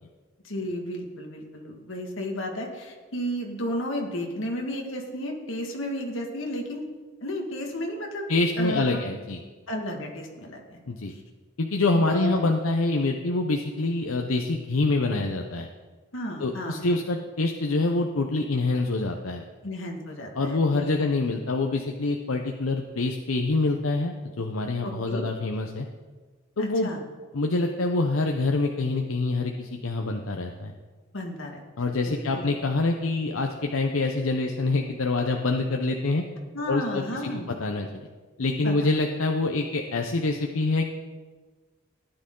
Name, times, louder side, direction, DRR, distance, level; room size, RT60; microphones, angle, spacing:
voice 1, 0.4-6.8 7.2-8.3 8.6-9.1 9.7-10.8 12.1-12.5 16.1-17.0 19.6-21.1 24.8-25.3 26.6-27.0 31.1-32.4 36.5-37.5 38.6-38.9, equal, 70° left, 1 dB, 1.9 m, -33 dB
voice 2, 8.3-9.4 10.9-11.1 11.6-15.7 16.4-19.4 20.4-25.9 26.6-26.9 27.3-30.7 31.8-36.2 36.7-37.3 37.6-38.0 38.4-40.9, left 2 dB, 90° left, 2 dB, 0.8 m, -26 dB
15.5 x 10.0 x 3.9 m, 1.4 s
head